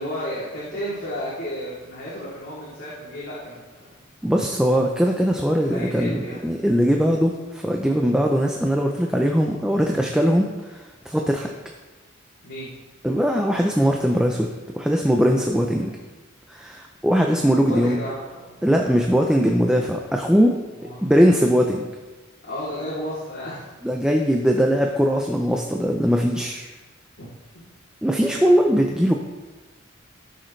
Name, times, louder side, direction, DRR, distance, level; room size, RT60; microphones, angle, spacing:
voice 1, 0.0-3.9 5.6-6.4 12.4-12.7 15.8-15.9 17.6-18.6 20.7-21.0 22.4-23.7 27.2-27.3 27.5-27.6 28.2-28.4, equal, 60° left, -10 dB, 3.1 m, -33 dB
voice 2, 4.2-11.5 13.0-14.5 14.7-16.0 16.5-18.0 18.6-20.6 21.0-21.9 23.8-26.7 28.0-29.2, equal, 5° right, 1 dB, 0.5 m, -20 dB
16.0 x 6.4 x 3.3 m, 1.2 s
head